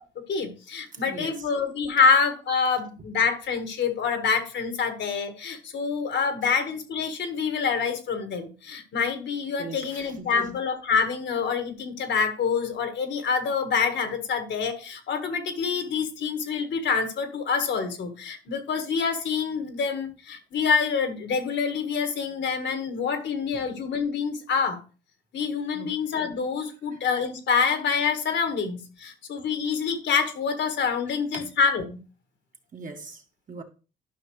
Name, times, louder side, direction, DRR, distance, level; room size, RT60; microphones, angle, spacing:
voice 1, 0.1-24.8 25.3-32.0, left 5 dB, 65° left, 1.7 m, -26 dB
voice 2, 1.0-1.3 9.6-10.5 25.7-25.9 31.3-31.5 32.7-33.2 33.5-33.6, right 4 dB, 40° right, 1.8 m, -39 dB
12.0 x 5.7 x 3.2 m
cardioid pair, 90°, 20 cm